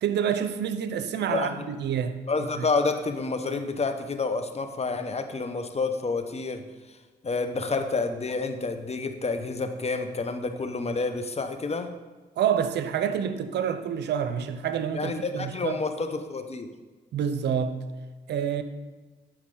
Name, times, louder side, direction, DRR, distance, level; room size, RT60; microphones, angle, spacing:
voice 1, 0.0-2.2 2.6-2.7 12.4-15.8 17.1-17.8 18.3-18.6, right 8 dB, 75° right, 0.6 m, -27 dB
voice 2, 2.3-6.6 7.2-11.9 14.9-16.7, left 3 dB, 35° left, 0.9 m, -29 dB
11.5 x 4.6 x 3.8 m
supercardioid pair, 55°, 18 cm